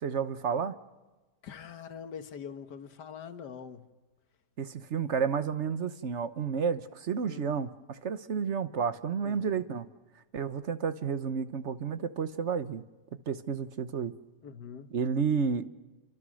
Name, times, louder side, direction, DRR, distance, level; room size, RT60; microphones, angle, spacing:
voice 1, 0.0-0.8 4.6-9.9 10.3-12.8 13.3-14.1 14.9-15.7, right 6 dB, 50° right, 12 dB, 1.2 m, -31 dB
voice 2, 1.4-3.8 7.2-7.6 9.2-9.6 14.4-14.9, left 7 dB, 85° left, 9 dB, 1.9 m, -44 dB
28.5 x 24.5 x 6.4 m, 1.2 s
omnidirectional pair, 1.8 m